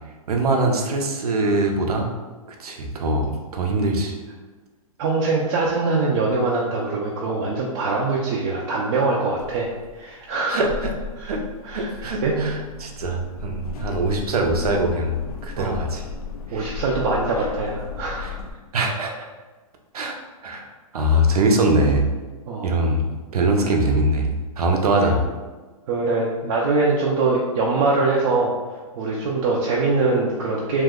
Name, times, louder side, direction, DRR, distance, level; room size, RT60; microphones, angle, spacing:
voice 1, 0.3-2.1 2.6-4.2 10.5-10.7 11.3-11.4 11.7-15.1 15.4-16.0 16.5-16.7 18.2-18.3 18.7-19.1 19.9-20.2 20.4-20.7 20.9-22.1 22.6-23.0 23.3-25.2, right 1 dB, 85° right, 2 dB, 0.6 m, -22 dB
voice 2, 5.0-10.6 11.2-11.3 11.6-11.9 12.2-12.3 15.6-15.8 16.5-18.3 22.5-22.7 25.0-25.1 25.9-28.5 28.9-30.8, right 3 dB, 45° right, -4 dB, 0.5 m, -23 dB
sound 1, 9.4-18.5, left 5 dB, 80° left, 0.4 m, -35 dB
2.7 x 2.1 x 3.6 m, 1.3 s
hypercardioid pair, 140°, 19 cm